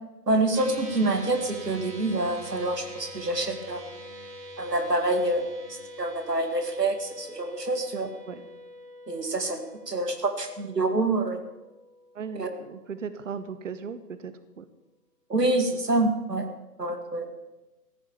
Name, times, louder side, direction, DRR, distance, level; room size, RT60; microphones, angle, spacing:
voice 1, 0.3-3.8 4.6-8.1 9.1-9.6 9.9-11.4 12.3-12.5 15.3-16.5 16.8-17.3, right 2 dB, 75° right, 6 dB, 2.2 m, -27 dB
sound 1, 0.5-13.1, equal, 15° right, 1.5 m, -45 dB
voice 2, 12.1-14.7, right 6 dB, 50° right, 12 dB, 1.0 m, -37 dB
14.0 x 9.9 x 7.1 m, 1.0 s
figure-of-eight pair, 135°, 48 cm